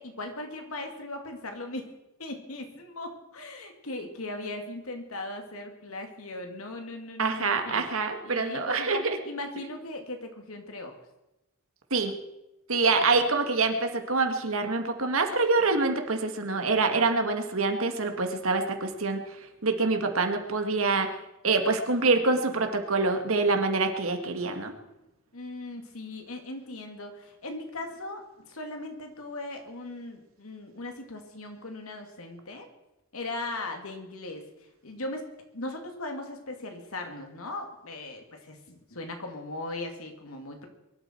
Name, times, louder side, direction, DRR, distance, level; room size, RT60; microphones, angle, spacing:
voice 1, 0.0-1.9 2.2-7.8 8.2-11.0 12.9-13.1 25.3-32.7 33.1-34.4 34.8-35.2 35.5-40.7, left 2 dB, 85° left, 4 dB, 2.5 m, -38 dB
voice 2, 7.2-9.2 11.9-12.1 12.7-19.2 19.6-21.1 21.4-24.7, right 3 dB, 75° right, 5 dB, 1.9 m, -25 dB
22.5 x 12.0 x 4.6 m, 0.92 s
head